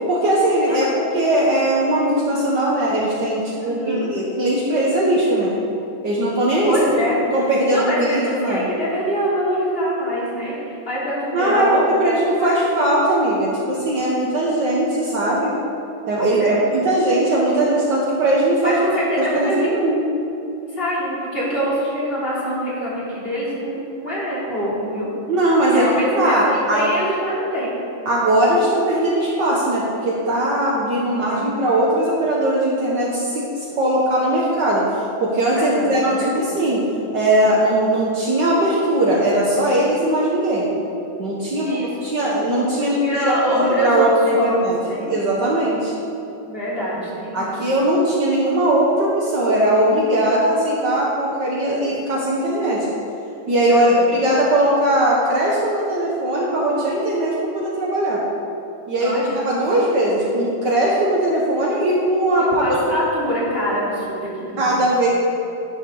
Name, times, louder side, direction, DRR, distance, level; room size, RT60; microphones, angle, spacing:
voice 1, 0.1-0.9 1.1-5.5 6.0-6.7 7.3-8.6 11.3-11.7 12.0-15.5 16.1-18.8 19.2-20.0 25.3-25.9 26.1-26.9 28.0-36.8 37.1-40.7 41.2-44.8 45.1-45.9 47.3-52.9 53.5-58.2 58.9-62.6 64.6-65.1, right 1 dB, 60° right, -5 dB, 1.8 m, -19 dB
voice 2, 0.7-1.0 3.6-4.1 6.7-7.3 7.7-11.8 12.4-12.7 16.3-16.7 18.6-19.7 20.7-25.1 25.7-27.7 31.1-31.5 35.5-36.5 41.7-42.1 42.8-44.1 44.4-44.5 44.9-45.1 46.5-47.5 53.7-54.1 59.0-59.4 62.6-64.7, equal, 25° left, -7 dB, 3.3 m, -25 dB
11.5 x 11.0 x 3.9 m, 2.8 s
omnidirectional pair, 2.3 m